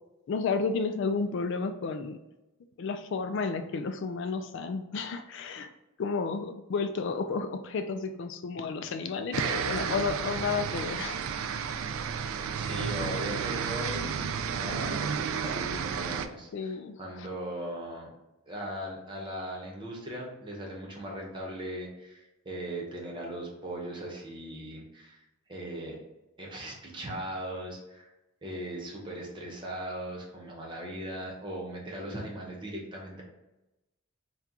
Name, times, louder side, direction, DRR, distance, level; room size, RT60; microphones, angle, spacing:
voice 1, 0.3-2.2 2.8-5.7 6.0-11.2 16.5-17.3, left 4 dB, 60° left, 7 dB, 0.3 m, -32 dB
sound 1, 9.3-16.3, right 6 dB, 75° right, 0.3 m, -32 dB
voice 2, 12.5-14.3 14.6-18.1 18.5-26.0 26.4-28.1 28.4-33.2, right 1 dB, 25° right, -2 dB, 0.9 m, -39 dB
4.4 x 2.3 x 3.7 m, 0.98 s
head